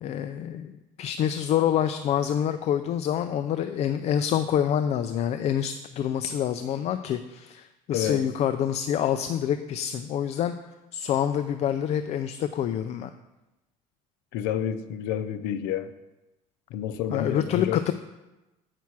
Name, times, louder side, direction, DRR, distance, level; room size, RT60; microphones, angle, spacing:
voice 1, 0.0-10.5 10.9-13.1 17.1-17.9, left 9 dB, 45° left, 0.4 m, -27 dB
voice 2, 7.9-8.3 14.3-15.9 16.7-17.8, left 9 dB, 90° left, 0.6 m, -29 dB
8.3 x 6.0 x 4.6 m
cardioid pair, 130°, 15 cm